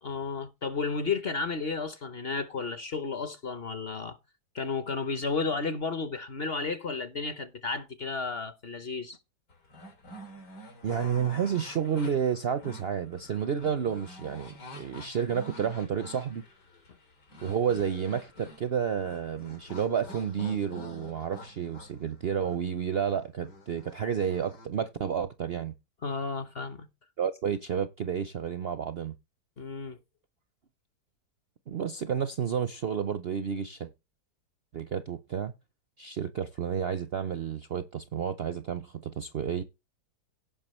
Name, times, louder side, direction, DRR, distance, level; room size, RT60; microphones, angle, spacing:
voice 1, 0.0-4.2 4.5-9.2 26.0-26.9 29.6-30.0, left 4 dB, 45° left, 0.9 m, -33 dB
sound 1, 9.5-24.7, equal, 80° left, 3.8 m, -48 dB
voice 2, 10.8-16.4 17.4-25.7 27.2-29.1 31.7-33.9 34.7-35.5 36.0-39.6, right 8 dB, 60° right, 0.6 m, -31 dB
17.0 x 5.7 x 3.1 m
omnidirectional pair, 1.8 m